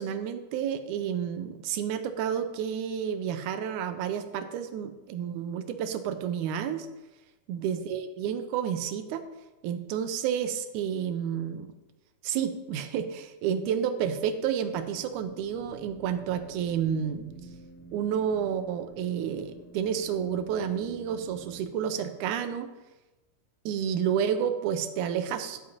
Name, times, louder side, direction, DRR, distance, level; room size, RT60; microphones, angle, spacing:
voice 1, 0.0-6.9 7.5-9.2 9.6-11.7 12.2-17.3 17.9-22.7 23.7-25.6, right 8 dB, 80° right, 9 dB, 1.9 m, -30 dB
sound 1, 14.7-21.6, right 2 dB, 5° right, 1.3 m, -49 dB
11.5 x 7.5 x 2.8 m, 1.1 s
omnidirectional pair, 3.8 m